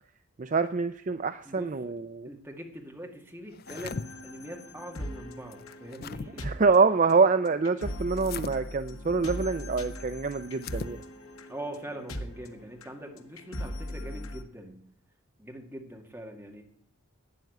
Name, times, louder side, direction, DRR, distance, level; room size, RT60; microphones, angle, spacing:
voice 1, 0.4-2.3 6.4-11.0, right 4 dB, 35° right, 11 dB, 0.4 m, -25 dB
voice 2, 1.5-1.9 2.3-6.5 11.5-14.8 15.4-16.6, right 1 dB, 10° right, 1 dB, 2.0 m, -43 dB
sound 1, 3.5-4.1 5.5-6.3 8.2-8.5 10.5-11.0, left 5 dB, 45° left, 0.5 m, -38 dB
sound 2, 3.7-14.4, equal, 75° left, 1.5 m, -40 dB
12.0 x 9.4 x 7.9 m, 0.66 s
head